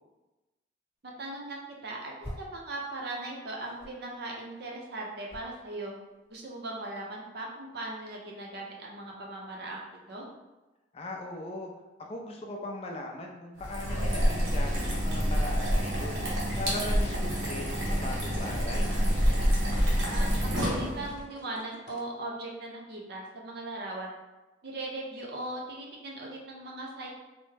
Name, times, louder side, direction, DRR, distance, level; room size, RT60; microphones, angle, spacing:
voice 1, 1.0-6.0 6.3-10.3 19.9-24.1 24.6-27.1, right 2 dB, 55° right, -2 dB, 0.6 m, -39 dB
sound 1, 1.1-2.7 2.9-6.7, equal, 15° left, 1.0 m, -47 dB
voice 2, 10.9-11.7 12.0-16.3 16.6-18.9, left 2 dB, 35° left, 1 dB, 0.4 m, -39 dB
sound 2, 13.6-21.2, equal, 85° right, 0.9 m, -27 dB
sound 3, 16.7-22.1, equal, 85° left, 0.7 m, -51 dB
3.3 x 2.0 x 3.2 m, 1.1 s
head